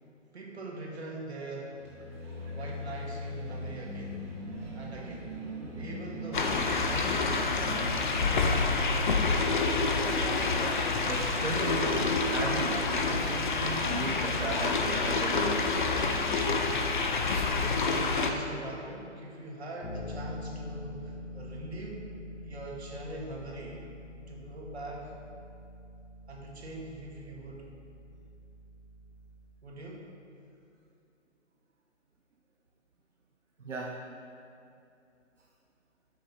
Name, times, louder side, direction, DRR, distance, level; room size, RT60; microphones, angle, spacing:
voice 1, 0.3-1.8 2.5-4.2 4.7-5.3 5.7-9.8 17.5-22.1 22.4-23.9 24.3-25.1 26.3-27.7 29.6-30.1, right 1 dB, 60° right, -2 dB, 2.4 m, -42 dB
sound 1, 1.7-16.3, equal, 20° right, 2.1 m, -42 dB
sound 2, 6.3-18.3, left 4 dB, 40° left, 0.7 m, -28 dB
voice 2, 10.6-15.8 33.6-34.1, right 2 dB, 75° right, 0 dB, 1.1 m, -37 dB
Bass guitar, 19.8-29.7, left 1 dB, 75° left, 1.7 m, -45 dB
12.5 x 6.4 x 4.2 m, 2.6 s
figure-of-eight pair, 140°, 37 cm